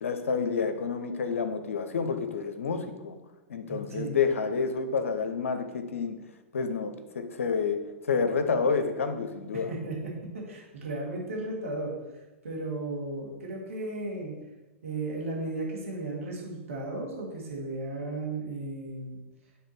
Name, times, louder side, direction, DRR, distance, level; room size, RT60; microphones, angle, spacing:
voice 1, 0.0-3.2 3.5-6.2 6.5-9.7, left 5 dB, 80° left, 8 dB, 0.8 m, -29 dB
voice 2, 3.7-4.2 9.5-11.9 12.4-14.3 14.8-19.2, right 2 dB, 80° right, -3 dB, 2.3 m, -35 dB
9.5 x 3.5 x 4.5 m, 1.1 s
hypercardioid pair, 115°, 7 cm